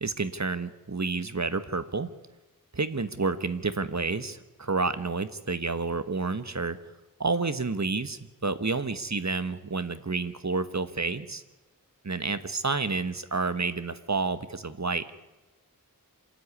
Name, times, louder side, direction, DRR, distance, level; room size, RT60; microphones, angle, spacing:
voice 1, 0.0-2.1 2.7-6.8 7.2-11.4 12.0-15.1, right 4 dB, 50° right, 12 dB, 1.4 m, -30 dB
26.5 x 13.5 x 9.8 m, 1.1 s
wide cardioid pair, 45°, 35 cm